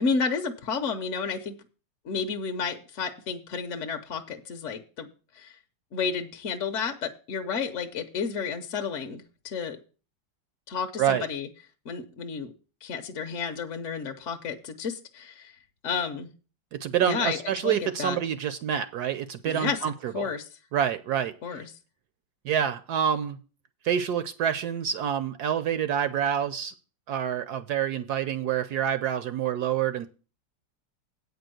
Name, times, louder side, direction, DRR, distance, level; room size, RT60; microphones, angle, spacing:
voice 1, 0.0-1.5 2.0-5.1 5.3-5.5 5.9-9.8 10.7-11.5 11.9-12.5 12.8-15.5 15.8-16.3 17.0-18.2 19.5-20.5 21.4-21.7, left 5 dB, 55° left, 5 dB, 0.9 m, -31 dB
voice 2, 16.7-20.3 20.7-21.3 22.4-23.4 23.8-26.7 27.1-30.1, right 9 dB, 70° right, 12 dB, 1.0 m, -27 dB
8.6 x 5.3 x 7.6 m, 0.36 s
omnidirectional pair, 2.1 m